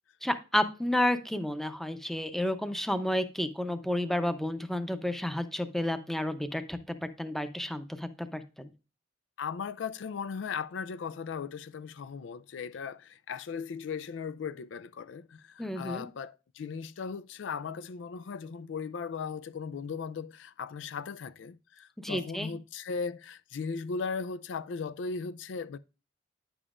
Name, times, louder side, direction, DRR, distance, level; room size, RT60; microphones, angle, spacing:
voice 1, 0.2-8.7 15.6-16.1 22.0-22.5, left 1 dB, ahead, 0.6 m, -31 dB
voice 2, 9.4-25.8, left 5 dB, 75° left, 0.4 m, -37 dB
9.7 x 7.0 x 2.5 m
head